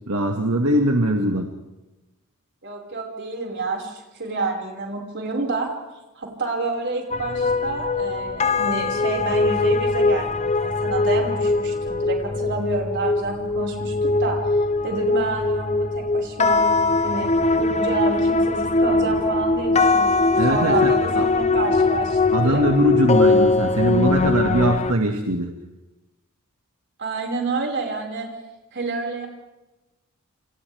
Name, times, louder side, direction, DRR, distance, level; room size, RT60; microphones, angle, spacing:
voice 1, 0.1-1.5 20.4-21.2 22.3-25.5, right 1 dB, 80° right, 2 dB, 2.0 m, -21 dB
voice 2, 2.6-5.7 6.2-13.9 14.2-14.4 14.8-16.6 17.0-17.3 17.6-22.6 27.0-28.3 28.7-29.3, right 3 dB, 55° right, 0 dB, 5.5 m, -28 dB
sound 1, 7.1-24.9, left 3 dB, 30° left, 0.7 m, -21 dB
29.0 x 27.0 x 3.6 m, 1.0 s
head